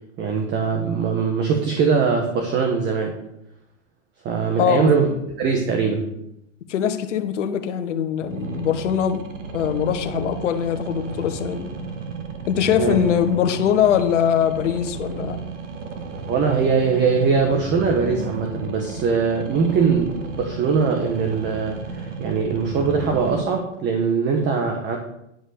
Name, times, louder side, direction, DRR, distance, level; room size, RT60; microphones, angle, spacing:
voice 1, 0.2-3.2 4.2-5.1 5.4-6.1 12.8-13.0 16.3-25.0, right 5 dB, 30° right, 3 dB, 1.5 m, -21 dB
voice 2, 4.6-5.2 6.7-9.2 9.5-11.7 12.5-15.4, left 9 dB, 75° left, 8 dB, 1.5 m, -22 dB
sound 1, 8.2-23.4, right 3 dB, 85° right, 1.8 m, -33 dB
11.0 x 5.5 x 6.6 m, 0.82 s
hypercardioid pair, 125°, 36 cm